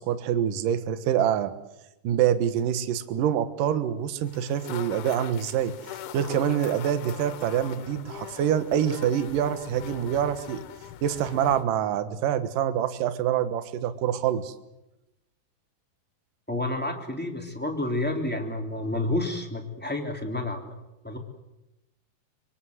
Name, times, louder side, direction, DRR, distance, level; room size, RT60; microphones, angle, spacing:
voice 1, 0.0-1.5 2.0-10.6 11.0-14.5, right 9 dB, 65° right, 11 dB, 2.4 m, -26 dB
sound 1, 4.2-11.6, left 10 dB, 85° left, 3.6 m, -41 dB
voice 2, 16.5-20.7 21.0-21.2, left 2 dB, 5° left, 1 dB, 2.2 m, -30 dB
25.0 x 24.5 x 8.0 m, 0.93 s
omnidirectional pair, 5.2 m